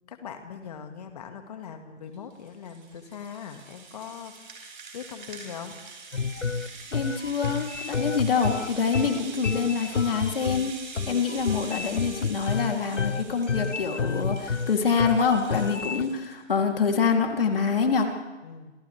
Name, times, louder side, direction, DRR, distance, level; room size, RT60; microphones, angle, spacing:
voice 1, 0.1-4.6 4.9-5.7 18.4-18.7, left 7 dB, 35° left, 6 dB, 2.0 m, -41 dB
Rattle (instrument), 2.1-16.3, right 4 dB, 45° right, 6.3 m, -44 dB
sound 1, 6.1-16.0, left 5 dB, 90° left, 1.0 m, -30 dB
voice 2, 6.9-10.8 11.1-18.1, left 5 dB, 50° left, 2 dB, 3.3 m, -25 dB
30.0 x 27.5 x 3.5 m, 1.2 s
figure-of-eight pair, 155°, 35 cm